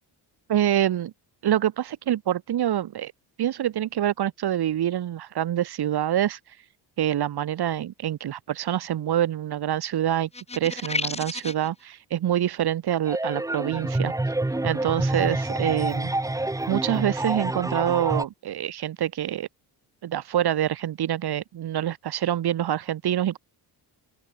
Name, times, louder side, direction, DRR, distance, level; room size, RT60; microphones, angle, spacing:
voice 1, 0.5-1.1 1.4-3.1 3.4-6.4 7.0-14.1 14.6-16.1 16.7-19.5 20.0-23.4, right 11 dB, 65° right, 3.6 m, -26 dB
sound 1, 10.3-11.7, left 3 dB, 15° left, 1.6 m, -31 dB
sound 2, 13.1-18.2, right 2 dB, 10° right, 1.6 m, -27 dB
open air
cardioid pair, 155°, 42 cm